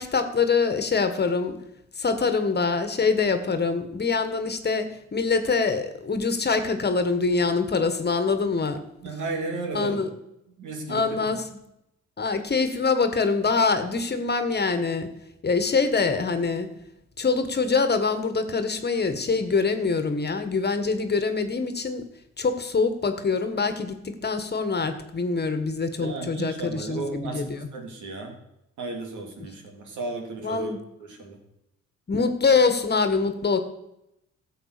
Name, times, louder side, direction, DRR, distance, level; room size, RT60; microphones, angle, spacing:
voice 1, 0.0-1.6 2.0-8.8 9.7-10.1 10.9-11.5 12.2-15.1 15.4-16.7 17.2-22.1 22.4-27.7 29.4-29.5 30.4-30.8 32.1-33.6, left 4 dB, 35° left, 9 dB, 1.6 m, -24 dB
voice 2, 9.0-10.0 10.6-11.2 26.0-28.4 28.8-30.7 31.1-31.4, right 3 dB, 75° right, 3 dB, 3.0 m, -34 dB
13.5 x 7.9 x 6.7 m, 0.84 s
cardioid pair, 90°, 30 cm